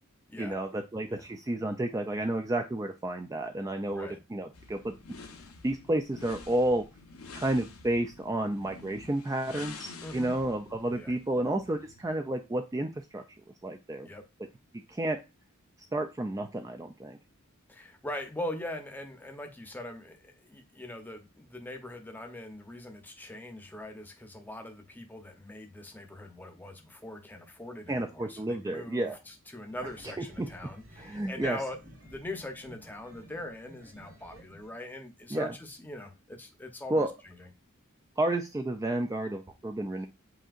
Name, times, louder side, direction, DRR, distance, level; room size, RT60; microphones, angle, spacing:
voice 1, 0.4-4.9 5.6-6.8 7.3-13.2 13.6-14.1 14.9-15.2 15.9-17.2 27.9-29.2 30.4-30.5 31.0-31.6 35.3-35.5 36.9-37.1 38.2-40.1, right 1 dB, 15° right, 5 dB, 0.3 m, -31 dB
sound 1, 4.5-12.1, left 4 dB, 85° left, 0.9 m, -49 dB
voice 2, 10.0-10.3 10.9-11.1 14.0-14.2 17.7-37.5, left 1 dB, 10° left, 4 dB, 0.7 m, -42 dB
sound 2, 29.6-34.7, equal, 85° right, 2.7 m, -53 dB
7.6 x 2.8 x 2.4 m, 0.26 s
head